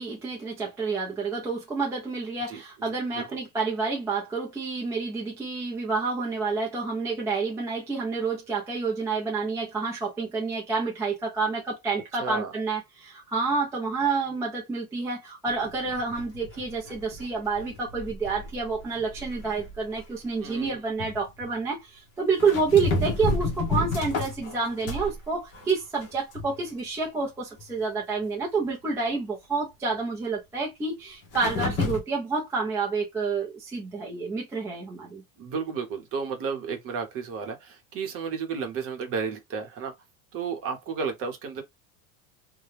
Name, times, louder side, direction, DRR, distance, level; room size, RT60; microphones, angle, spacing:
voice 1, 0.0-35.2, right 4 dB, 5° right, 0.4 m, -29 dB
voice 2, 12.2-12.5 20.4-20.8 35.4-39.9 40.3-41.6, right 5 dB, 35° right, 0.9 m, -32 dB
sound 1, 15.5-20.0 20.5-20.7 21.0-21.5 22.4-25.2 25.5-26.7 27.0-27.1 27.6-27.7 31.3-32.0, left 2 dB, 35° left, 0.9 m, -31 dB
2.8 x 2.2 x 3.2 m
supercardioid pair, 155°, 41 cm